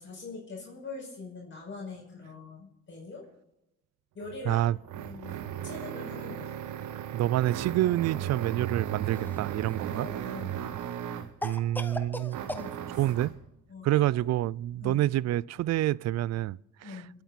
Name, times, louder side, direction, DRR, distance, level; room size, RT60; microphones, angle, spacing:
voice 1, 0.0-3.3 4.1-4.7 4.9-6.6 9.9-10.5 12.4-13.0 13.7-14.2 14.8-15.0 16.8-17.1, left 3 dB, 40° left, 5.6 m, -43 dB
sound 1, 4.2-11.4 12.3-13.4, right 10 dB, 80° right, 1.1 m, -36 dB
voice 2, 7.1-10.1 11.4-12.4 13.0-13.3 13.8-17.0, right 14 dB, 60° right, 0.4 m, -27 dB
Cough, 9.1-9.9 11.4-12.7, left 1 dB, 5° left, 1.1 m, -38 dB
26.5 x 8.9 x 4.2 m
cardioid pair, 90°, 30 cm